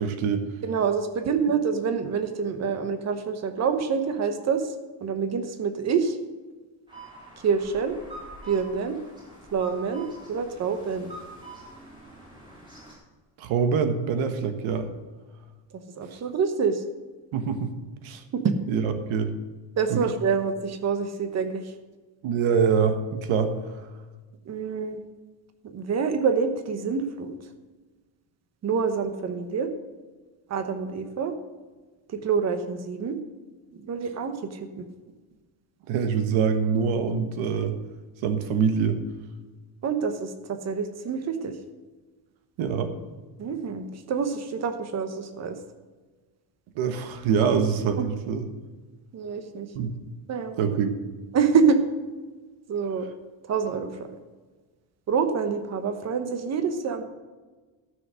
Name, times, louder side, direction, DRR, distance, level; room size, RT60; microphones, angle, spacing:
voice 1, 0.0-0.5 13.4-14.9 17.3-17.7 18.0-18.2 18.7-19.3 19.9-20.1 22.2-23.5 23.8-23.9 35.9-37.7 38.2-39.0 42.6-42.9 46.7-48.5 49.7-49.9 50.6-50.9, right 6 dB, 75° right, 8 dB, 1.4 m, -24 dB
voice 2, 0.6-4.6 5.0-6.1 7.4-8.0 8.5-9.0 9.5-11.1 16.0-16.8 18.4-18.5 19.8-21.6 24.5-25.0 25.7-27.3 28.6-29.7 30.5-31.3 32.2-33.2 33.9-34.3 34.8-34.9 39.8-41.5 43.4-45.6 48.0-48.1 49.1-49.7 50.3-50.5 51.3-51.8 52.7-53.0 53.5-53.9 55.1-57.0, right 6 dB, 35° right, 8 dB, 1.0 m, -26 dB
sound 1, 6.9-12.9, right 1 dB, 10° right, 4.3 m, -45 dB
13.5 x 6.4 x 6.3 m, 1.3 s
cardioid pair, 165°, 47 cm